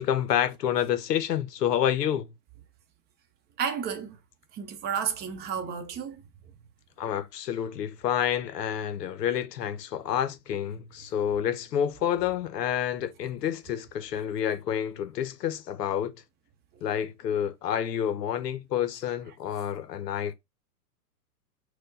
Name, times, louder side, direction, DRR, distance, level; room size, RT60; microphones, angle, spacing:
voice 1, 0.0-2.3 7.0-16.1 16.8-20.3, left 10 dB, 85° left, 0.6 m, -29 dB
voice 2, 3.6-4.2 4.5-6.2, right 7 dB, 20° right, 0.6 m, -31 dB
4.3 x 2.2 x 3.9 m
hypercardioid pair, 115°, 47 cm